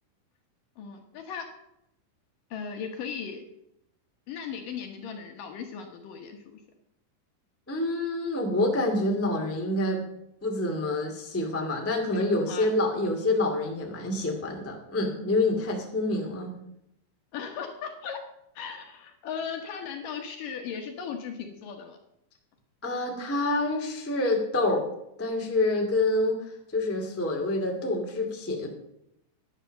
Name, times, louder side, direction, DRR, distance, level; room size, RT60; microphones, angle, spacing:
voice 1, 0.8-1.5 2.5-3.4 4.3-6.4 12.1-12.7 17.3-18.2 18.6-22.0, left 6 dB, 65° left, 4 dB, 2.3 m, -37 dB
voice 2, 7.7-10.0 10.4-16.5 22.8-24.9 25.2-26.4 26.7-28.7, left 2 dB, 10° left, 0 dB, 0.7 m, -27 dB
11.0 x 10.0 x 6.5 m, 0.80 s
omnidirectional pair, 4.9 m